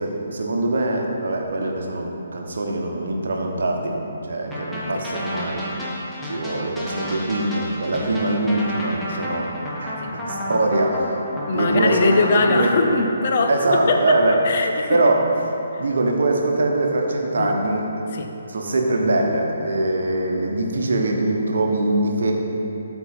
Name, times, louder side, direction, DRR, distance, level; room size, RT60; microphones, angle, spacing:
voice 1, 0.0-5.7 6.2-9.5 9.8-11.1 11.5-12.0 12.3-12.7 13.5-14.4 14.9-15.3 15.8-17.9 18.5-22.3, right 2 dB, 60° right, 1 dB, 1.0 m, -22 dB
sound 1, 4.5-13.1, equal, ahead, 1.3 m, -31 dB
voice 2, 11.5-15.0 17.4-17.5 18.1-18.3, left 3 dB, 45° left, 4 dB, 0.7 m, -22 dB
12.5 x 4.5 x 4.2 m, 2.9 s
figure-of-eight pair, 135°, 0 cm